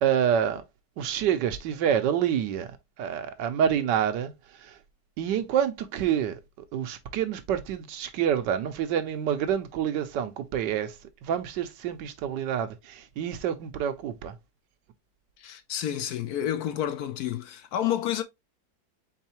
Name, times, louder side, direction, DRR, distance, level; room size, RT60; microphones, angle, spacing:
voice 1, 0.0-0.6 1.0-4.3 4.6-4.8 5.2-6.4 6.7-11.0 11.2-14.3, right 9 dB, 90° right, 1.4 m, -27 dB
voice 2, 15.4-18.2, left 11 dB, 70° left, 1.0 m, -29 dB
4.6 x 4.1 x 2.9 m
omnidirectional pair, 1.9 m